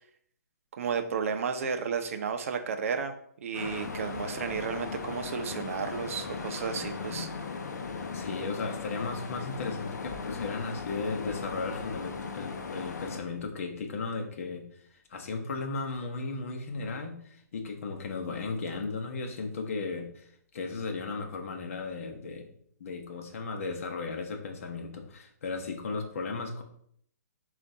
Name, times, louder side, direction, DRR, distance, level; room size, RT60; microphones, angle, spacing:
voice 1, 0.7-3.1 3.4-7.3, right 6 dB, 55° right, 7 dB, 0.6 m, -32 dB
sound 1, 3.5-13.2, left 5 dB, 85° left, 0.6 m, -37 dB
voice 2, 8.1-14.6 15.1-22.5 22.8-26.6, left 4 dB, 50° left, 3 dB, 0.9 m, -35 dB
7.3 x 2.4 x 2.7 m, 0.66 s
hypercardioid pair, 165°, 9 cm